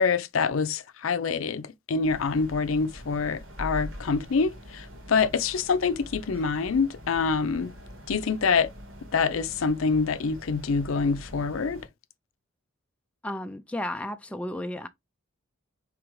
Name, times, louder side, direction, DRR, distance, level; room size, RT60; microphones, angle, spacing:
voice 1, 0.0-7.7 8.1-8.7 9.1-11.8, left 5 dB, 70° left, 0.5 m, -26 dB
sound 1, 2.0-11.9, equal, 85° right, 1.7 m, -43 dB
voice 2, 13.2-14.9, left 1 dB, 5° left, 0.3 m, -33 dB
4.9 x 3.4 x 3.1 m
head